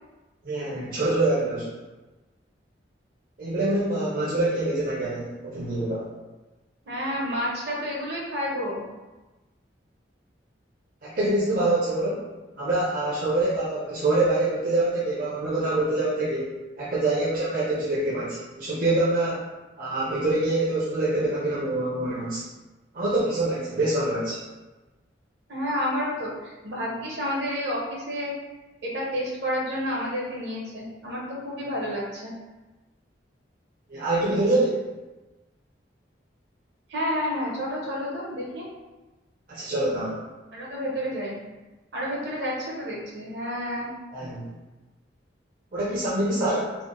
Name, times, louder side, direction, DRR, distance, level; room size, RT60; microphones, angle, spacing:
voice 1, 0.4-1.7 3.4-6.0 11.0-12.3 12.6-19.5 19.8-22.4 22.9-24.4 33.9-34.9 39.5-40.2 44.1-44.5 45.7-46.8, right 2 dB, 50° right, -8 dB, 0.6 m, -25 dB
voice 2, 6.8-8.8 25.5-28.3 28.8-32.3 36.9-38.7 40.5-41.4 41.9-43.9, equal, 65° right, -4 dB, 1.0 m, -30 dB
3.5 x 2.1 x 3.7 m, 1.1 s
head